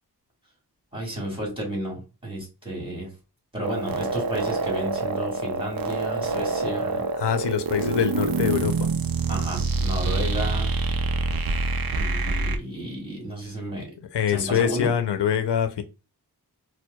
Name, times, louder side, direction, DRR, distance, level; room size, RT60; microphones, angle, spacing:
voice 1, 0.9-3.1 3.5-7.1 9.3-10.7 11.9-13.9 14.3-14.9, right 1 dB, 15° right, -2 dB, 1.8 m, -32 dB
sound 1, 3.6-12.6, right 3 dB, 60° right, 0.5 m, -26 dB
voice 2, 7.2-8.9 14.1-15.8, left 8 dB, 90° left, 9 dB, 0.6 m, -24 dB
4.5 x 2.0 x 2.2 m, 0.30 s
wide cardioid pair, 115°, 40 cm